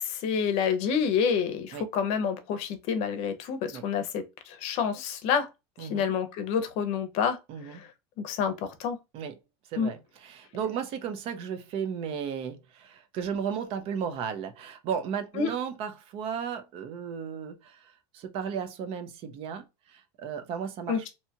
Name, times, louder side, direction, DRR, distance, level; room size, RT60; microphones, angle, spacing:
voice 1, 0.0-5.5 5.8-7.4 7.7-7.8 8.2-9.0 9.8-9.9 15.4-15.5 20.9-21.1, left 6 dB, 50° left, 0.7 m, -28 dB
voice 2, 5.8-6.1 7.5-7.8 9.1-9.4 9.7-21.1, right 7 dB, 40° right, 0.5 m, -35 dB
2.7 x 2.3 x 2.7 m
supercardioid pair, 155°, 14 cm